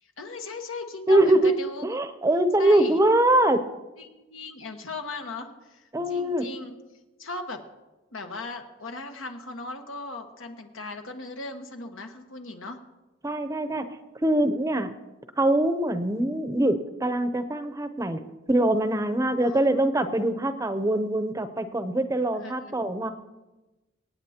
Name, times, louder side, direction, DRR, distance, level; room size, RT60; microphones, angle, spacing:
voice 1, 0.2-1.8 2.6-3.0 4.0-6.7 7.2-7.6 8.1-12.8 19.4-19.9 22.4-23.0, left 3 dB, 90° left, 4 dB, 1.3 m, -38 dB
voice 2, 1.1-1.6 1.8-3.6 5.9-6.4 13.2-13.8 14.2-14.9 15.4-18.2 18.5-23.1, right 1 dB, 15° right, 9 dB, 0.6 m, -23 dB
25.5 x 9.0 x 2.9 m, 1.1 s
head